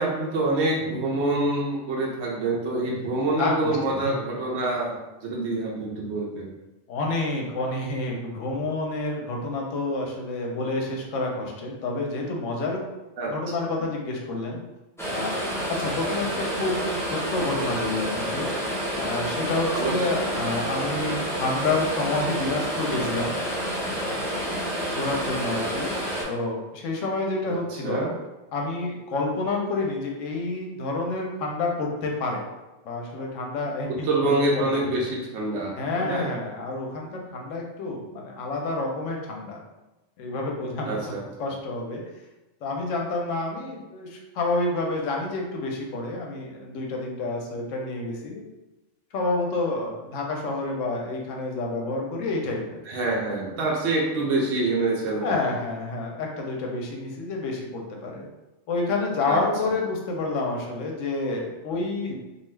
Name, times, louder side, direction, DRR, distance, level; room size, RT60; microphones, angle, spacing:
voice 1, 0.0-6.5 13.2-13.3 19.7-20.4 27.5-28.1 34.0-36.3 40.8-41.2 52.9-55.5 59.3-59.4, right 2 dB, 70° right, -3 dB, 0.8 m, -26 dB
voice 2, 3.4-4.1 6.9-12.9 13.3-14.6 15.1-15.4 15.7-18.5 19.0-23.3 24.9-25.9 26.3-28.1 28.5-32.4 32.8-34.7 35.8-39.6 40.2-41.1 41.4-42.0 42.6-48.5 49.1-52.8 53.9-54.1 55.2-58.3 58.7-62.1, left 2 dB, 85° left, 0 dB, 1.0 m, -29 dB
sound 1, 15.0-26.2, equal, 5° left, 0.4 m, -29 dB
2.6 x 2.3 x 3.1 m, 1.0 s
omnidirectional pair, 1.3 m